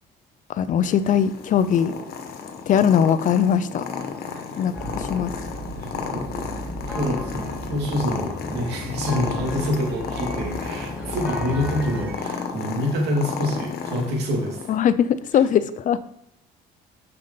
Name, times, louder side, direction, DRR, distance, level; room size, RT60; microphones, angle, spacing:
voice 1, 0.5-1.9 2.7-3.8 4.6-5.3 14.7-16.0, left 8 dB, 50° left, 13 dB, 0.6 m, -20 dB
Purr, 0.8-14.8, left 5 dB, 65° left, 1.3 m, -33 dB
sound 1, 4.7-12.2, equal, 10° right, 3.6 m, -35 dB
voice 2, 5.8-6.5 6.9-14.6, equal, 80° right, -1 dB, 2.7 m, -27 dB
6.6 x 5.5 x 5.4 m, 0.74 s
cardioid pair, 110°, 17 cm